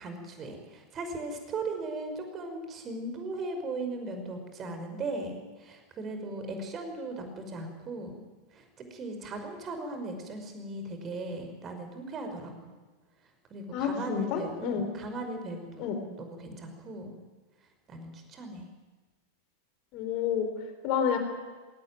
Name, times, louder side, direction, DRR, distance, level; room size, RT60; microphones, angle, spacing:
voice 1, 0.0-8.3 8.5-12.7 13.5-17.2 17.9-18.7, right 2 dB, 25° right, 6 dB, 5.4 m, -38 dB
voice 2, 13.7-14.8 15.8-16.0 19.9-20.5 20.8-21.2, left 8 dB, 40° left, 7 dB, 4.3 m, -29 dB
20.5 x 18.0 x 9.4 m, 1.3 s
figure-of-eight pair, 90°, 0 cm